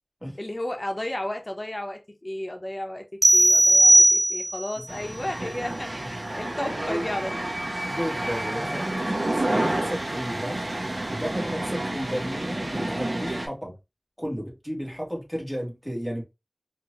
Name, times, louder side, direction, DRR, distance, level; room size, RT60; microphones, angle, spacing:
voice 1, 0.4-7.6, left 1 dB, 45° left, 0.9 m, -33 dB
sound 1, 3.2-4.7, right 1 dB, 50° right, 0.4 m, -17 dB
sound 2, 4.9-13.5, right 1 dB, 75° right, 0.9 m, -29 dB
voice 2, 7.8-10.6 11.1-13.7 14.2-16.2, equal, ahead, 1.7 m, -33 dB
4.4 x 2.6 x 2.5 m
wide cardioid pair, 40°, 0 cm